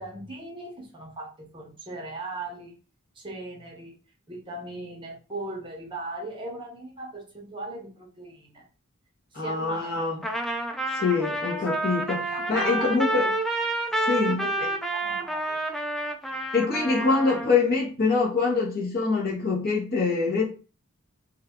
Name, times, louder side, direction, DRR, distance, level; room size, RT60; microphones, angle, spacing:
voice 1, 0.0-2.7 3.1-3.9 4.3-8.7 9.3-10.2 11.7-11.8 12.3-13.3 14.2-15.6, right 2 dB, 20° right, 0.8 m, -38 dB
voice 2, 9.3-10.2 10.9-13.2 14.0-14.5 16.3-20.4, left 4 dB, 45° left, 0.8 m, -25 dB
Trumpet, 10.2-17.6, right 1 dB, ahead, 0.3 m, -29 dB
3.1 x 2.3 x 3.6 m
head